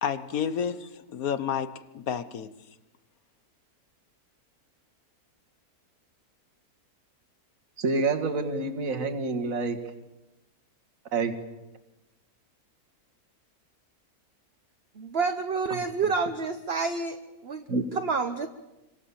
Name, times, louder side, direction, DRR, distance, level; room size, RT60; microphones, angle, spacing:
voice 1, 0.0-2.5, left 8 dB, 65° left, 1.5 m, -30 dB
voice 2, 7.8-9.8 11.1-11.3 17.7-17.8, right 3 dB, 60° right, 2.2 m, -27 dB
voice 3, 15.0-17.2 17.4-17.6 17.9-18.5, right 4 dB, 45° right, 1.3 m, -28 dB
27.0 x 25.5 x 7.1 m
omnidirectional pair, 1.6 m